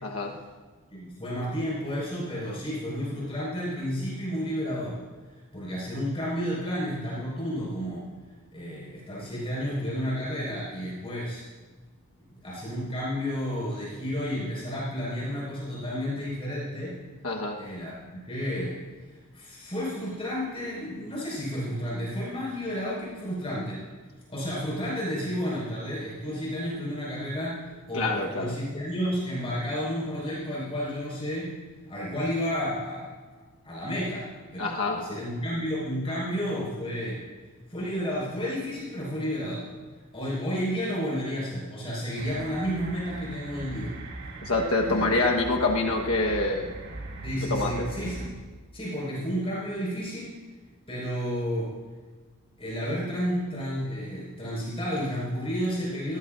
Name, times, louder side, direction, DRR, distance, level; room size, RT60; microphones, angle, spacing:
voice 1, 0.0-0.3 17.2-17.6 27.9-28.5 34.6-35.2 44.4-46.7 47.5-47.9, left 2 dB, 75° left, 0 dB, 1.4 m, -26 dB
voice 2, 0.9-5.0 5.5-8.1 8.5-11.4 12.4-17.0 17.5-18.8 19.3-23.8 24.3-31.5 31.9-33.1 33.6-37.2 37.7-39.6 40.1-44.0 44.9-45.1 47.2-48.3 48.7-50.4 50.9-51.7 52.6-56.2, equal, 25° left, -6 dB, 5.3 m, -31 dB
sound 1, 42.1-48.3, right 2 dB, 50° right, 1.8 m, -40 dB
19.5 x 17.5 x 2.6 m, 1.3 s
head